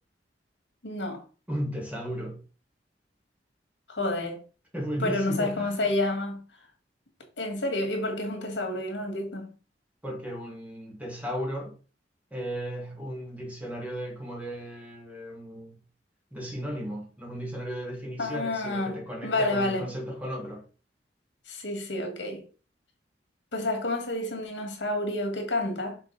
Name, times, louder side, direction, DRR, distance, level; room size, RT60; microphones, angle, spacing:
voice 1, 0.8-1.2 3.9-4.4 5.0-6.4 7.4-9.5 18.2-19.9 21.5-22.4 23.5-26.0, left 2 dB, 75° left, 1.8 m, -29 dB
voice 2, 1.5-2.4 4.7-5.8 10.0-11.7 12.3-15.8 16.3-20.7, equal, 10° right, 2.0 m, -35 dB
5.9 x 4.0 x 4.0 m
head